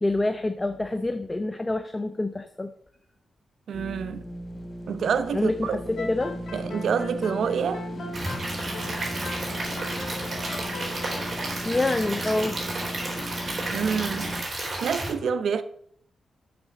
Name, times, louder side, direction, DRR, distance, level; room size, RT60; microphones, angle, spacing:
voice 1, 0.0-2.7 5.3-6.4 11.6-12.6, left 2 dB, 25° left, 0.6 m, -27 dB
sound 1, 3.7-14.4, equal, 45° left, 1.2 m, -37 dB
voice 2, 3.7-4.2 4.9-5.8 6.5-7.8 13.7-14.3 14.8-15.6, right 6 dB, 70° right, 0.7 m, -27 dB
sound 2, 6.0-12.6, left 3 dB, 60° left, 2.3 m, -40 dB
Stream / Liquid, 8.1-15.1, right 2 dB, 45° right, 4.0 m, -32 dB
6.6 x 6.0 x 6.4 m
supercardioid pair, 50°, 0 cm